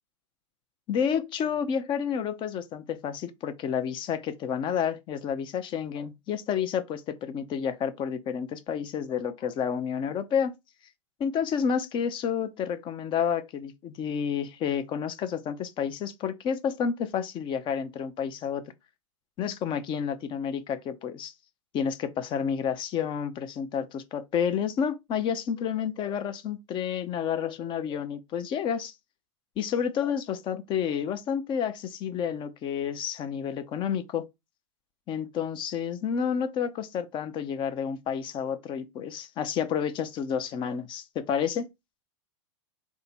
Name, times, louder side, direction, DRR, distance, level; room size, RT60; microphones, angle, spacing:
voice 1, 0.9-10.6 11.2-18.6 19.4-21.3 21.7-28.9 29.6-34.3 35.1-41.7, left 7 dB, 30° left, 0.6 m, -30 dB
3.5 x 2.7 x 4.1 m
hypercardioid pair, 100°, 16 cm